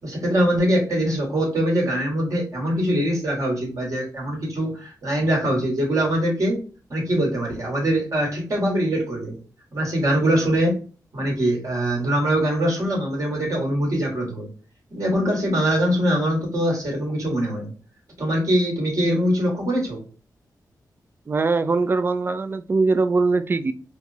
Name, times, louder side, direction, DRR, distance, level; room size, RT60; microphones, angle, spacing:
voice 1, 0.0-6.6 6.9-9.4 9.7-10.7 11.1-14.5 14.9-17.7 18.2-20.0, equal, 50° right, 1.7 m, -23 dB
voice 2, 21.3-23.7, right 3 dB, 30° right, 0.3 m, -21 dB
4.5 x 2.0 x 2.7 m
wide cardioid pair, 125°, 7 cm